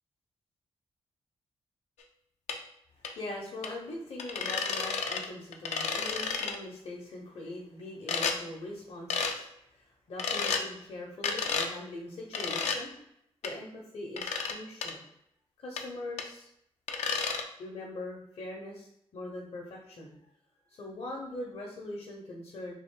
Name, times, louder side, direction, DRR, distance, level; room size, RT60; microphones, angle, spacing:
sound 1, 2.5-2.6 3.0-3.1 3.6-3.7 4.2-5.3 5.5-6.6 8.1-8.4 9.1-9.4 10.2-10.6 11.2-11.7 12.3-12.8 13.4-13.5 14.2-14.5 14.8-14.9 15.8-15.9 16.2-16.3 16.9-17.4, left 5 dB, 90° left, 0.4 m, -31 dB
voice 1, 2.9-12.9 13.4-15.0 15.6-16.5 17.6-20.2 20.7-22.7, left 2 dB, 60° left, -2 dB, 0.7 m, -42 dB
3.6 x 2.6 x 3.7 m, 0.76 s
cardioid pair, 60°, 11 cm